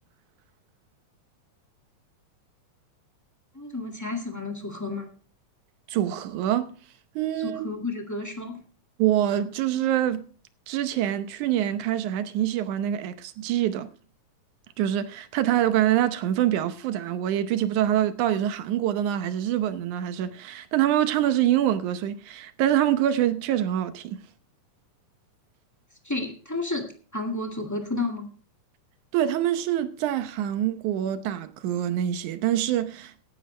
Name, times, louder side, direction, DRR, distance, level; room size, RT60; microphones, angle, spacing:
voice 1, 3.5-5.1 7.4-8.6 26.0-28.3, left 2 dB, 10° left, 1.2 m, -31 dB
voice 2, 5.9-6.7 7.2-7.6 9.0-10.2 10.7-13.9 14.8-24.2 29.1-33.1, right 11 dB, 80° right, 2.3 m, -25 dB
16.0 x 11.0 x 3.2 m
omnidirectional pair, 3.6 m